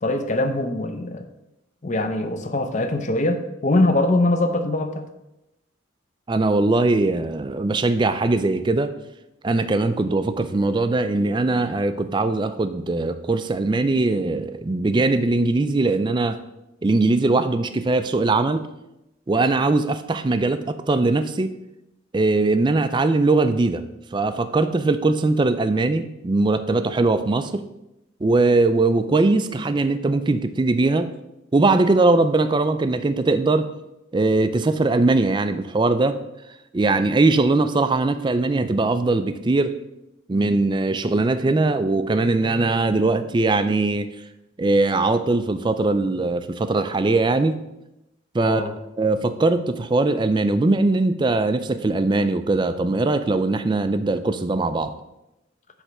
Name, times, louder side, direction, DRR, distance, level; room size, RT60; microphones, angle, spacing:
voice 1, 0.0-1.3 1.8-5.1 48.4-48.7, left 2 dB, 35° left, 7 dB, 0.6 m, -22 dB
voice 2, 6.3-9.0 9.4-16.4 16.8-18.7 19.3-21.5 22.1-23.8 24.1-27.6 28.2-31.1 31.5-33.7 34.1-36.2 36.7-39.7 40.3-44.1 44.6-47.6 48.3-48.6 49.0-54.9, right 2 dB, 20° right, 10 dB, 0.3 m, -20 dB
8.0 x 3.3 x 6.0 m, 0.91 s
head